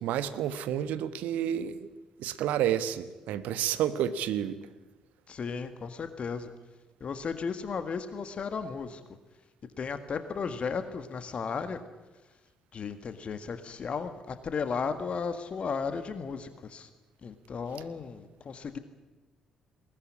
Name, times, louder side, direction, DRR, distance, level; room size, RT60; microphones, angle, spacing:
voice 1, 0.0-1.9 2.2-4.6, right 10 dB, 60° right, 13 dB, 1.2 m, -30 dB
voice 2, 5.3-6.5 7.0-9.0 9.8-11.8 12.7-16.9 17.2-18.8, left 5 dB, 45° left, 10 dB, 1.7 m, -35 dB
20.5 x 19.0 x 9.9 m, 1.2 s
figure-of-eight pair, 45°, 3 cm